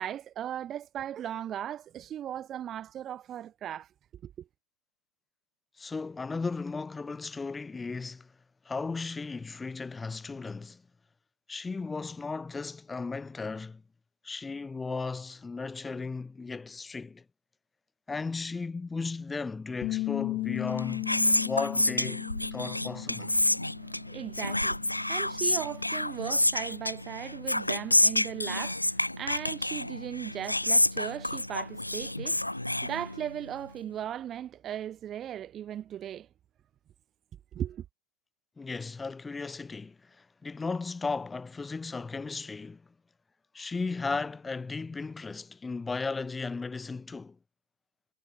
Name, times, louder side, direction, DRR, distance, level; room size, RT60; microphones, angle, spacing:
voice 1, 0.0-3.9 4.2-4.3 23.8-24.8 25.1-36.3 37.5-37.8, right 10 dB, 30° right, 0.7 m, -37 dB
voice 2, 5.8-8.3 8.6-10.8 11.5-13.8 14.2-17.2 18.1-21.1 21.4-22.2 22.5-23.3 38.6-42.8 43.5-47.4, left 4 dB, 10° left, 3.2 m, -35 dB
Bass guitar, 19.8-24.1 24.4-26.1, left 18 dB, 40° left, 0.3 m, -36 dB
Whispering, 20.6-33.5, left 1 dB, 85° left, 0.7 m, -29 dB
figure-of-eight pair, 90°, 0 cm